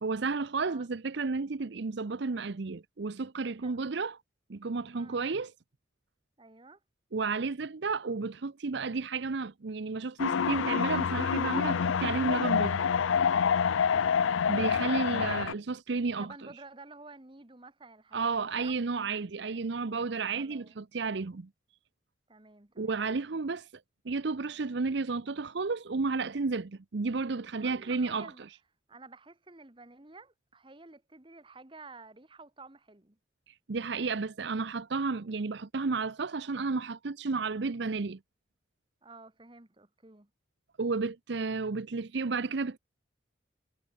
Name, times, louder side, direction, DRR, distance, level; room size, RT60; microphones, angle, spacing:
voice 1, 0.0-4.2 4.5-5.5 7.1-12.9 14.5-16.3 18.1-21.5 22.8-23.7 24.0-28.3 33.5-38.2 40.8-42.8, right 4 dB, 60° right, 0.6 m, -32 dB
voice 2, 0.6-0.9 3.6-3.9 4.9-5.3 6.4-6.8 13.9-14.5 16.2-18.7 20.3-20.7 22.3-23.0 27.5-28.5 28.9-33.2 39.0-40.3, right 3 dB, 25° right, 1.2 m, -51 dB
sound 1, 10.2-15.5, left 7 dB, 85° left, 0.5 m, -27 dB
head